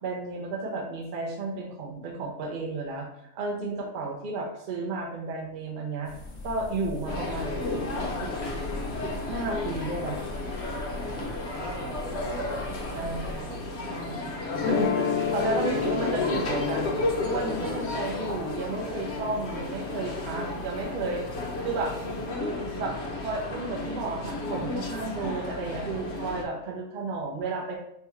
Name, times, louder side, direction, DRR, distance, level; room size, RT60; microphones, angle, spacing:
voice 1, 0.0-3.1 3.3-6.1 6.4-8.3 9.0-10.2 12.9-16.9 17.2-21.2 21.6-22.0 22.4-27.8, right 3 dB, 45° right, 1 dB, 0.7 m, -33 dB
sound 1, 6.0-13.4, left 2 dB, 30° left, 0.7 m, -41 dB
sound 2, 7.1-26.4, left 2 dB, 55° left, 1.0 m, -33 dB
voice 2, 11.1-13.7 15.7-16.9, right 1 dB, 80° right, 0 dB, 1.3 m, -39 dB
sound 3, 14.5-20.6, left 8 dB, 80° left, 1.0 m, -33 dB
5.5 x 2.3 x 3.0 m, 0.79 s
omnidirectional pair, 1.5 m